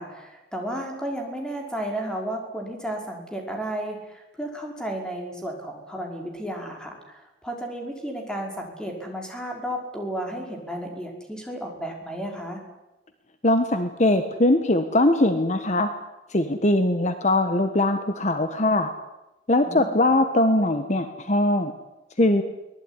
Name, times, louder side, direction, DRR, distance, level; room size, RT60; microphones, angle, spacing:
voice 1, 0.0-12.6 19.7-20.0, right 1 dB, 5° left, 2 dB, 5.4 m, -33 dB
voice 2, 13.4-15.9 16.3-18.9 19.5-21.7 22.2-22.4, left 1 dB, 40° left, 8 dB, 1.5 m, -21 dB
23.5 x 19.0 x 10.0 m, 1.0 s
head